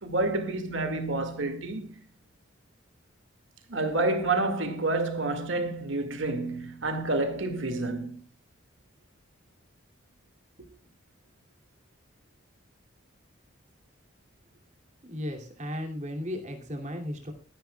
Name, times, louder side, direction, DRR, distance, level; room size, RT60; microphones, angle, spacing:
voice 1, 0.0-1.9 3.7-8.2, right 2 dB, 65° right, 2.1 m, -29 dB
voice 2, 15.0-17.3, left 1 dB, 35° right, 2.6 m, -35 dB
24.5 x 10.5 x 2.3 m
head